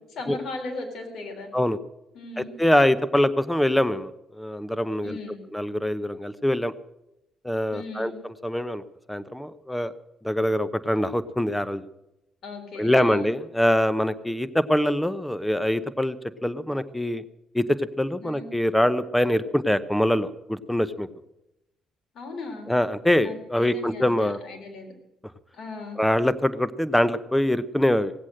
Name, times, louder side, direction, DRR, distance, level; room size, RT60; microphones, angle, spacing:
voice 1, 0.2-1.5 2.1-2.5 5.0-5.4 7.7-8.1 12.4-13.3 18.2-18.5 22.1-22.7 23.2-24.9 25.5-26.0, left 3 dB, 65° left, 3 dB, 3.8 m, -37 dB
voice 2, 2.4-5.2 5.5-6.7 7.4-8.1 8.4-8.8 9.1-9.9 10.2-11.8 12.7-16.2 16.4-17.2 17.5-21.1 22.7-24.4 26.0-28.1, left 1 dB, 5° left, 14 dB, 0.8 m, -24 dB
17.5 x 8.2 x 7.7 m, 0.90 s
cardioid pair, 90°, 0 cm